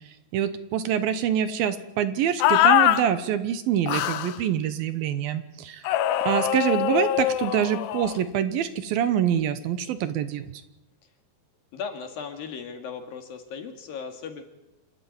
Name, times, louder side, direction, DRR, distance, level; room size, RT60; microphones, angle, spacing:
voice 1, 0.3-5.8 6.3-10.5, right 9 dB, 75° right, 12 dB, 2.6 m, -25 dB
sound 1, 2.4-3.0 3.9-4.4 5.9-8.2, left 13 dB, 90° left, 3.2 m, -22 dB
voice 2, 11.7-14.4, left 6 dB, 65° left, 5 dB, 3.7 m, -37 dB
27.0 x 13.0 x 9.6 m, 0.96 s
omnidirectional pair, 4.7 m